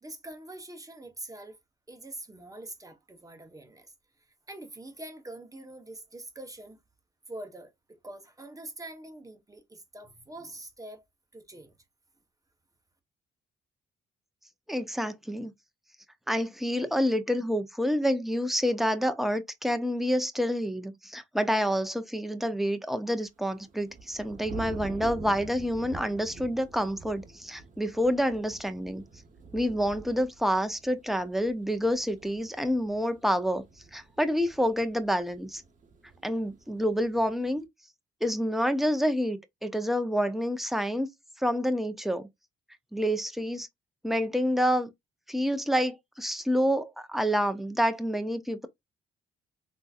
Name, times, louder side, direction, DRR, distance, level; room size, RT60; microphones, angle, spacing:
voice 1, 0.0-1.6 1.9-3.9 4.5-6.8 7.3-11.1 11.3-11.8, right 1 dB, 15° right, 1.0 m, -44 dB
voice 2, 14.7-15.5 16.3-29.0 29.5-33.6 33.9-35.6 36.2-37.7 38.2-41.1 41.4-42.3 42.9-43.7 44.0-44.9 45.3-48.7, equal, ahead, 0.6 m, -28 dB
sound 1, 23.4-37.6, right 3 dB, 40° right, 1.1 m, -47 dB
3.6 x 2.7 x 2.4 m
cardioid pair, 90°, 20 cm